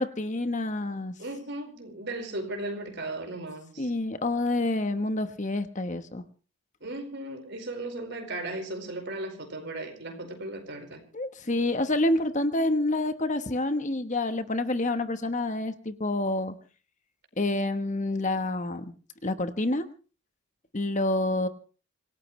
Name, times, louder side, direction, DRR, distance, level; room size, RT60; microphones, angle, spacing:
voice 1, 0.0-1.1 3.8-6.2 11.1-16.5 17.4-18.9 19.2-19.9 20.7-21.5, left 2 dB, 35° left, 10 dB, 1.0 m, -28 dB
voice 2, 1.2-3.9 6.8-11.0, right 2 dB, 50° right, 4 dB, 4.8 m, -36 dB
26.0 x 17.5 x 3.2 m, 0.37 s
head